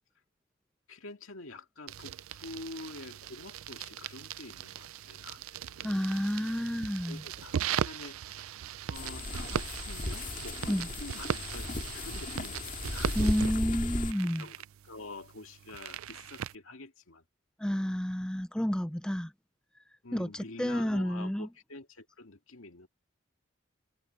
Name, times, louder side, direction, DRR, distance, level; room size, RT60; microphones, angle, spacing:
voice 1, 0.9-6.1 7.1-7.6 7.8-8.5 8.9-13.4 14.2-17.2 20.0-22.9, left 2 dB, 85° left, 2.1 m, -47 dB
sound 1, 1.9-16.6, right 8 dB, 90° right, 0.4 m, -39 dB
voice 2, 5.8-7.2 10.7-10.9 13.2-14.4 17.6-19.3 20.1-21.5, equal, 5° left, 0.4 m, -30 dB
sound 2, 8.9-14.1, left 2 dB, 40° left, 2.0 m, -35 dB
head